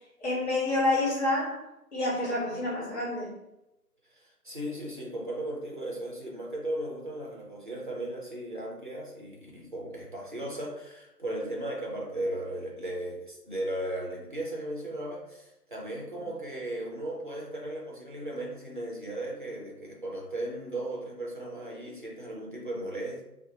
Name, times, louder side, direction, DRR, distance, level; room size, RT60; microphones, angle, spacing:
voice 1, 0.2-1.6 1.9-3.3, left 2 dB, 45° left, -5 dB, 1.3 m, -28 dB
voice 2, 4.1-23.2, right 1 dB, 35° right, -2 dB, 0.5 m, -36 dB
2.8 x 2.0 x 3.5 m, 0.92 s
figure-of-eight pair, 155°, 48 cm